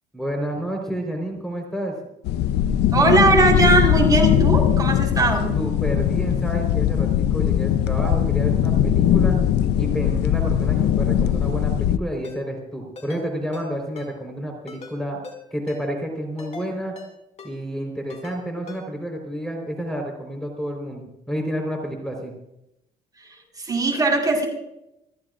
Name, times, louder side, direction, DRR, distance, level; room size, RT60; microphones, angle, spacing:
voice 1, 0.1-2.0 5.5-9.4 9.8-15.2 15.5-16.9 17.4-22.3, equal, 5° left, 2 dB, 4.4 m, -30 dB
sound 1, 2.2-12.0, left 10 dB, 80° left, 0.7 m, -20 dB
voice 2, 2.9-5.5 23.6-24.5, right 2 dB, 20° right, 0 dB, 4.8 m, -19 dB
Ringtone, 12.2-12.4 13.0-13.2 13.5-13.7 14.0-14.1 14.7-14.9 15.2-15.4 15.7-15.8 16.4-16.7 17.0-17.1 17.4-17.5 18.1-18.4 18.7-18.8, left 3 dB, 40° left, 6.2 m, -39 dB
29.0 x 14.0 x 2.6 m, 0.84 s
cardioid pair, 110°, 17 cm